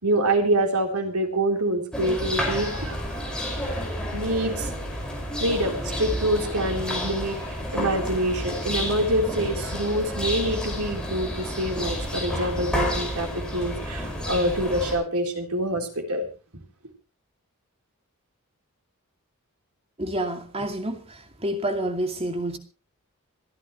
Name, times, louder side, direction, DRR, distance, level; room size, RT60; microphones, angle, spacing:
voice 1, 0.0-3.8 4.1-4.7 5.4-7.4 7.7-16.3, right 1 dB, 90° right, 3.7 m, -26 dB
sound 1, 1.9-14.9, equal, 5° left, 5.3 m, -30 dB
voice 2, 20.0-21.0 21.4-22.6, right 1 dB, 25° right, 2.4 m, -28 dB
27.0 x 11.0 x 3.1 m
head